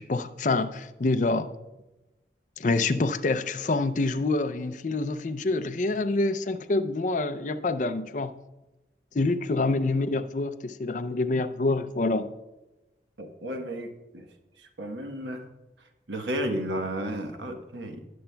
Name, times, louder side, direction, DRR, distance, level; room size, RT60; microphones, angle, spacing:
voice 1, 0.0-1.5 2.6-8.4 9.1-12.3, left 3 dB, 45° left, 10 dB, 0.5 m, -26 dB
voice 2, 13.2-14.3 14.6-15.4 16.1-18.1, right 1 dB, 85° right, 5 dB, 1.1 m, -33 dB
19.0 x 6.9 x 2.3 m, 1.0 s
head